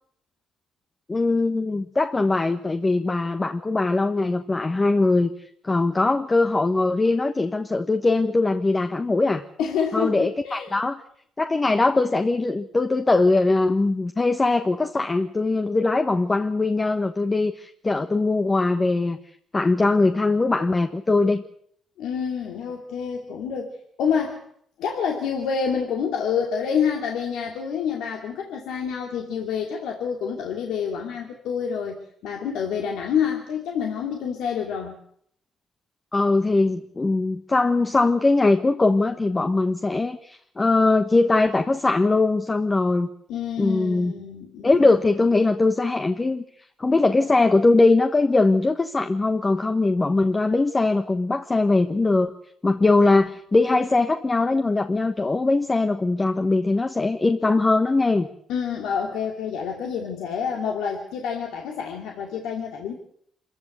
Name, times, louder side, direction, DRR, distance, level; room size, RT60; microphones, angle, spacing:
voice 1, 1.1-5.3 5.6-9.4 9.9-11.0 11.4-19.2 19.5-21.4 36.1-43.1 43.6-44.1 44.6-46.4 46.8-52.3 52.6-58.3, left 3 dB, 25° left, 7 dB, 1.2 m, -21 dB
voice 2, 9.6-10.7 22.0-23.7 24.0-24.4 24.8-35.0 43.3-44.9 53.0-53.1 58.5-62.9, left 7 dB, 85° left, 1 dB, 2.7 m, -28 dB
26.0 x 15.0 x 8.1 m, 0.67 s
cardioid pair, 90°, 0 cm